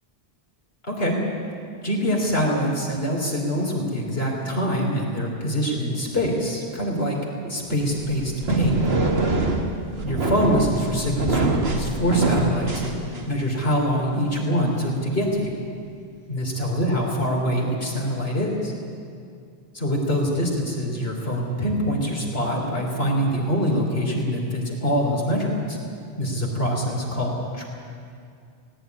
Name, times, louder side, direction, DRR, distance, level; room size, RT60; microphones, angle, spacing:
voice 1, 0.9-1.2 1.8-7.2 7.4-8.9 10.0-13.0 13.3-15.5 16.3-18.7 19.7-25.8 26.2-27.7, equal, 75° left, -1 dB, 4.0 m, -24 dB
sound 1, 7.9-13.5, right 3 dB, 80° right, 2.0 m, -24 dB
17.5 x 17.0 x 9.7 m, 2.4 s
omnidirectional pair, 1.0 m